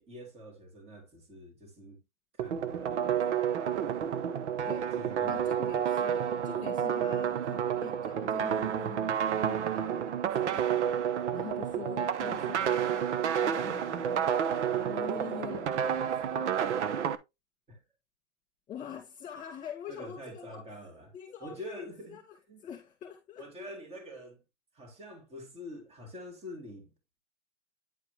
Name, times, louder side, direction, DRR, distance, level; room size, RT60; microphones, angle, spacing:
voice 1, 0.0-2.0 2.3-3.2 5.0-5.8 17.7-17.8 19.9-21.1 21.4-22.2 22.5-22.6 23.4-24.4 24.7-26.9, equal, 15° right, 2.5 m, -46 dB
sound 1, 2.4-17.1, right 8 dB, 65° right, 1.1 m, -30 dB
voice 2, 5.2-14.3 14.7-16.5 18.7-20.8 21.1-22.2 22.6-23.5, left 9 dB, 20° left, 2.2 m, -45 dB
9.8 x 4.8 x 3.2 m
hypercardioid pair, 130°, 37 cm